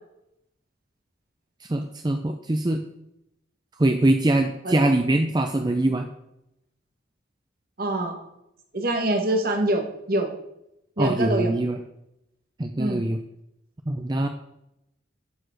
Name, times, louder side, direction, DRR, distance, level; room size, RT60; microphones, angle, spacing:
voice 1, 1.6-2.8 3.8-6.0 11.0-11.8 12.6-13.2 13.9-14.3, right 1 dB, 20° right, 6 dB, 0.5 m, -23 dB
voice 2, 7.8-8.2 8.7-10.3 11.0-11.5 12.8-13.0, right 1 dB, 45° right, 4 dB, 1.4 m, -25 dB
12.5 x 4.9 x 6.3 m, 0.85 s
head